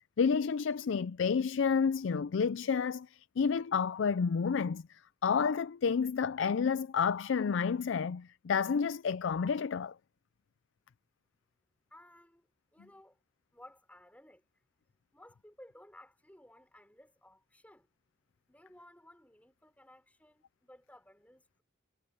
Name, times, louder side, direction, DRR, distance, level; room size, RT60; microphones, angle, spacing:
voice 1, 0.2-4.8 5.2-9.9, left 6 dB, 70° left, 0.4 m, -30 dB
voice 2, 11.9-12.5 12.7-13.2 13.5-14.4 15.1-17.9 18.5-21.6, left 1 dB, 5° left, 4.7 m, -57 dB
head